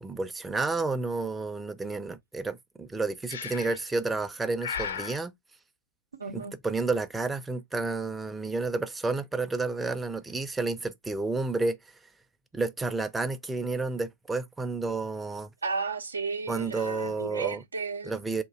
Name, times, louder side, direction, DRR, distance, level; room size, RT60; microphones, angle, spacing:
voice 1, 0.0-5.3 6.3-11.8 12.5-15.5 16.5-17.6 18.0-18.4, right 3 dB, 10° right, 0.5 m, -31 dB
Breathing, 3.3-3.9 4.6-5.2, left 7 dB, 65° left, 0.5 m, -35 dB
voice 2, 6.2-6.6 15.6-18.2, right 4 dB, 75° right, 0.6 m, -33 dB
2.9 x 2.6 x 3.8 m
figure-of-eight pair, 90°, 0 cm